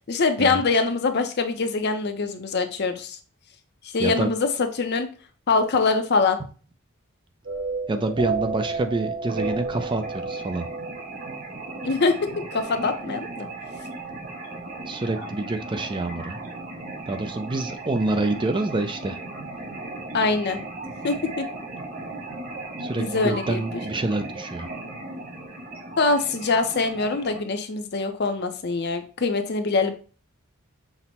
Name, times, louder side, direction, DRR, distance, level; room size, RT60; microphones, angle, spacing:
voice 1, 0.1-3.2 3.8-5.1 5.5-6.4 11.8-12.2 12.5-13.5 20.1-20.6 21.0-21.4 22.9-23.6 26.0-29.9, left 4 dB, 50° left, 7 dB, 0.6 m, -23 dB
voice 2, 4.0-4.3 7.9-10.7 14.9-16.4 17.1-19.2 22.8-24.7, right 2 dB, 25° right, 8 dB, 0.4 m, -27 dB
sound 1, 7.4-12.3, right 4 dB, 65° right, 0.8 m, -32 dB
sound 2, 9.3-27.4, right 2 dB, 45° right, 1.7 m, -37 dB
5.9 x 2.1 x 4.1 m, 0.37 s
head